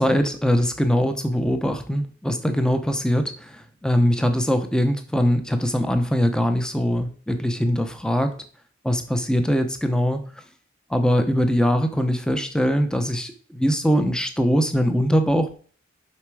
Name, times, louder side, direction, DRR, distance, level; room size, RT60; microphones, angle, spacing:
voice 1, 0.0-8.4 8.8-10.3 10.9-15.5, equal, 5° left, 7 dB, 0.9 m, -22 dB
7.3 x 5.8 x 4.8 m, 0.43 s
head